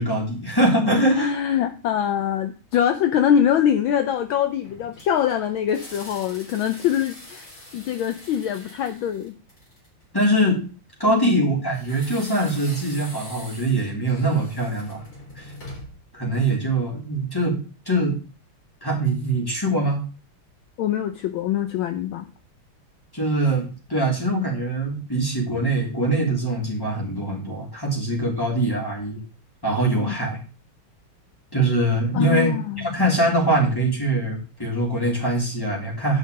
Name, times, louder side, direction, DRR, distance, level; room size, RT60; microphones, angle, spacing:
voice 1, 0.0-1.3 10.1-10.6 11.0-15.0 15.4-15.5 16.1-17.6 17.9-18.2 18.8-20.0 23.1-29.2 29.6-30.4 31.5-32.5 32.9-36.2, right 1 dB, 10° left, -2 dB, 3.5 m, -23 dB
voice 2, 1.1-9.4 11.1-11.4 20.8-22.3 30.0-30.1 32.1-32.9, left 9 dB, 70° left, 8 dB, 1.4 m, -23 dB
sound 1, 4.6-10.0 11.7-16.1, left 1 dB, 40° left, 4.5 m, -43 dB
10.0 x 5.6 x 5.2 m, 0.35 s
omnidirectional pair, 2.4 m